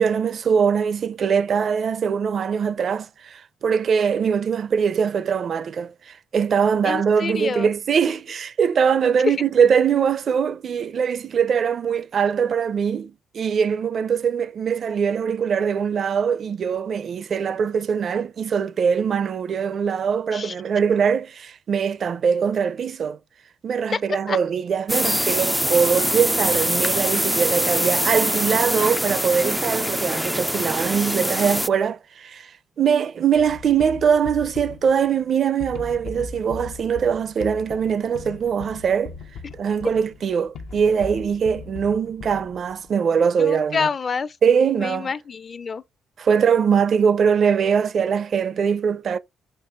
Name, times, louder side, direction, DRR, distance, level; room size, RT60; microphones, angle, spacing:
voice 1, 0.0-23.2 23.6-39.1 39.5-43.9 44.4-45.1 46.2-49.2, right 7 dB, 55° right, 0.6 m, -22 dB
voice 2, 6.8-7.7 9.2-9.3 20.3-20.5 23.9-24.4 39.4-39.5 43.4-44.4 44.8-45.8, left 5 dB, 40° left, 0.6 m, -27 dB
sound 1, 24.9-31.7, equal, ahead, 0.3 m, -23 dB
sound 2, 33.4-42.9, left 4 dB, 80° left, 0.9 m, -39 dB
5.7 x 4.6 x 3.7 m
cardioid pair, 90°, 0 cm